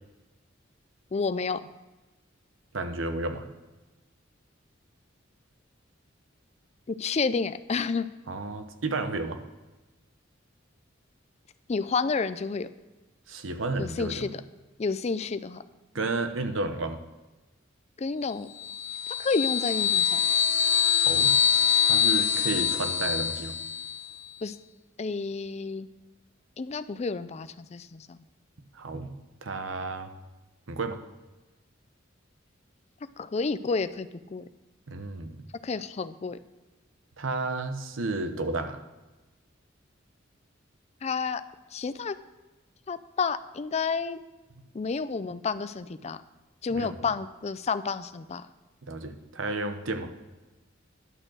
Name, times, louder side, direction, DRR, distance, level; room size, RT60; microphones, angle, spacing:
voice 1, 1.1-1.6 6.9-8.1 11.7-12.7 13.8-14.4 14.8-15.6 18.0-18.5 19.2-20.2 24.4-24.6 25.0-25.9 26.6-28.2 33.2-34.4 35.6-36.4 41.0-41.4 41.7-42.2 42.9-44.2 44.7-46.2 46.6-48.5, left 4 dB, 35° left, 13 dB, 0.4 m, -30 dB
voice 2, 2.7-3.5 8.3-9.4 13.3-14.3 15.9-17.0 21.0-21.4 21.8-23.6 28.7-29.1 29.4-30.1 30.7-31.0 34.9-35.4 37.2-38.8 46.7-47.0 48.9-50.1, right 2 dB, 75° right, 8 dB, 0.9 m, -32 dB
sound 1, 18.6-24.1, left 8 dB, 55° left, 1.4 m, -24 dB
11.0 x 6.4 x 6.3 m, 1.1 s
head